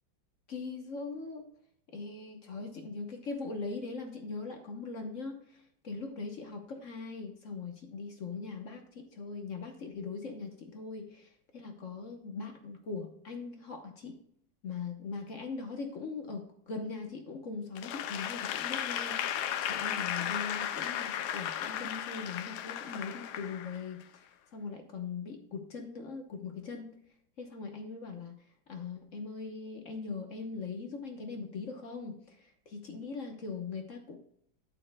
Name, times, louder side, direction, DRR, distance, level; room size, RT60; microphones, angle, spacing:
voice 1, 0.5-1.5 1.9-14.2 14.6-26.9 27.4-28.4 28.7-34.2, left 4 dB, 50° left, 4 dB, 1.1 m, -41 dB
Applause / Crowd, 17.8-24.1, left 10 dB, 70° left, 1.0 m, -35 dB
8.9 x 8.7 x 2.2 m, 0.68 s
omnidirectional pair, 2.1 m